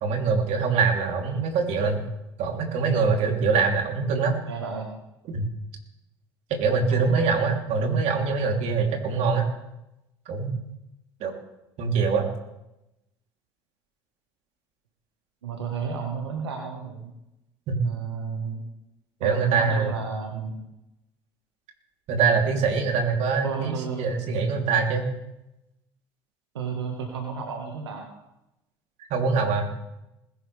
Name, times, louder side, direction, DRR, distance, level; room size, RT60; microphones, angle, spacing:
voice 1, 0.0-2.1 2.4-4.4 5.3-5.5 6.5-9.5 10.3-10.6 11.2-11.3 11.8-12.2 17.7-17.8 19.2-19.9 22.1-25.1 29.1-29.7, right 5 dB, 60° right, 1 dB, 3.2 m, -24 dB
voice 2, 4.5-4.9 6.9-7.4 15.4-17.1 17.8-18.6 19.2-20.6 23.4-24.1 26.5-28.1, right 6 dB, 90° right, 1 dB, 1.5 m, -32 dB
20.5 x 11.5 x 3.4 m, 0.89 s
hypercardioid pair, 65°, 13 cm